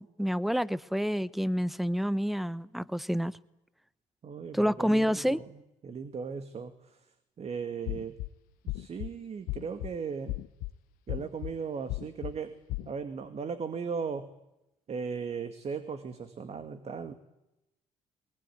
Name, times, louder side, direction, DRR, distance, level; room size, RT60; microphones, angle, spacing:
voice 1, 0.0-3.3 4.5-5.4, equal, ahead, 1.0 m, -28 dB
voice 2, 4.2-5.4 5.8-7.0 7.4-8.2 8.7-10.4 11.1-12.6 12.9-14.3 14.9-17.1, right 5 dB, 45° right, 2.2 m, -37 dB
sound 1, 7.9-8.3 8.7-9.1 9.5-9.9 10.3-10.7 11.1-11.5 11.9-12.3 12.7-12.9, left 19 dB, 80° left, 0.8 m, -35 dB
22.0 x 21.0 x 9.5 m
supercardioid pair, 70°, 14 cm